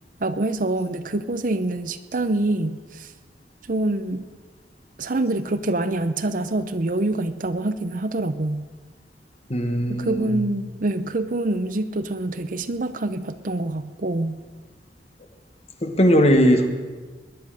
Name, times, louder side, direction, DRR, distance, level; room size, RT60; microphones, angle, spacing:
voice 1, 0.2-3.1 3.7-4.2 5.0-8.7 9.9-14.4, right 2 dB, 50° right, 12 dB, 0.7 m, -25 dB
voice 2, 9.5-10.3 15.8-16.7, equal, 35° left, 6 dB, 1.5 m, -18 dB
21.5 x 9.9 x 6.5 m, 1.4 s
head